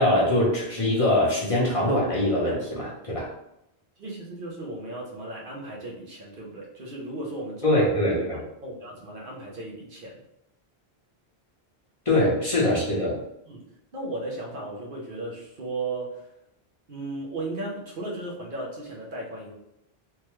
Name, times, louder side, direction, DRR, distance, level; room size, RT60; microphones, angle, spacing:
voice 1, 0.0-3.3 7.6-8.4 12.1-13.1, left 1 dB, 35° left, -6 dB, 0.8 m, -23 dB
voice 2, 4.0-7.8 8.6-10.2 12.2-12.3 13.5-13.6 13.9-16.2 16.9-19.5, right 2 dB, 60° right, -3 dB, 0.9 m, -35 dB
3.4 x 2.2 x 3.0 m, 0.83 s
omnidirectional pair, 1.1 m